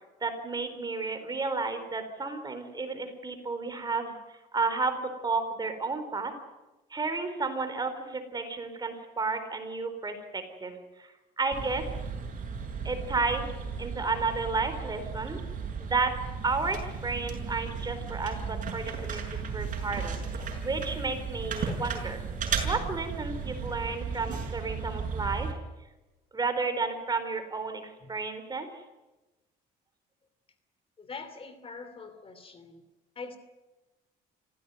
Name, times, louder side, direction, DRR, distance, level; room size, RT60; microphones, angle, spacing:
voice 1, 0.2-6.3 6.9-11.9 12.8-13.5 13.8-15.4 15.8-22.2 22.6-25.6 26.3-28.7, right 3 dB, 25° right, 8 dB, 4.1 m, -32 dB
sound 1, 11.5-25.5, right 5 dB, 50° right, 6.5 m, -35 dB
voice 2, 31.0-32.8 33.2-33.4, left 4 dB, 35° left, 10 dB, 2.9 m, -43 dB
26.0 x 16.0 x 9.3 m, 1.1 s
cardioid pair, 110°, 17 cm